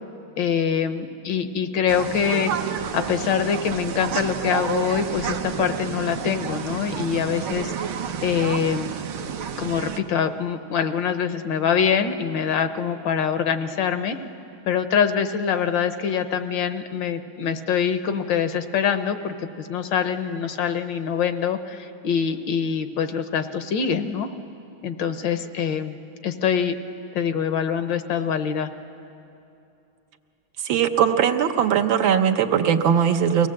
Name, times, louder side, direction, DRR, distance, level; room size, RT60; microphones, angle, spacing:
voice 1, 0.4-2.5 2.9-7.7 8.2-8.9 9.6-14.2 14.7-24.3 24.8-25.9 26.2-26.7 27.1-28.7, left 7 dB, 70° left, 9 dB, 1.5 m, -24 dB
sound 1, 1.9-10.0, right 8 dB, 90° right, 1.8 m, -30 dB
voice 2, 30.6-33.5, right 8 dB, 75° right, 7 dB, 1.6 m, -20 dB
24.0 x 18.0 x 7.6 m, 2.8 s
omnidirectional pair, 2.2 m